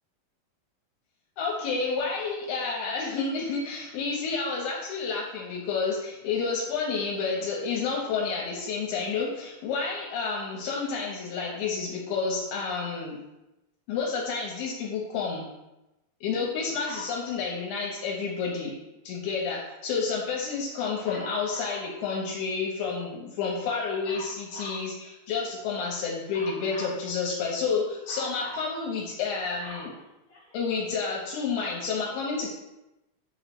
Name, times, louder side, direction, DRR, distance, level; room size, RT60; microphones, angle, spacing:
voice 1, 1.4-13.2 13.9-15.5 16.2-18.7 19.1-29.9 30.5-32.5, left 5 dB, 80° left, -3 dB, 2.3 m, -30 dB
Dog, 16.8-17.2 21.0-21.9 24.0-24.9 26.3-27.0 28.1-28.7 29.2-30.8 31.5-31.6, left 1 dB, 55° left, 1.3 m, -43 dB
5.6 x 2.0 x 4.3 m, 0.95 s
omnidirectional pair, 4.1 m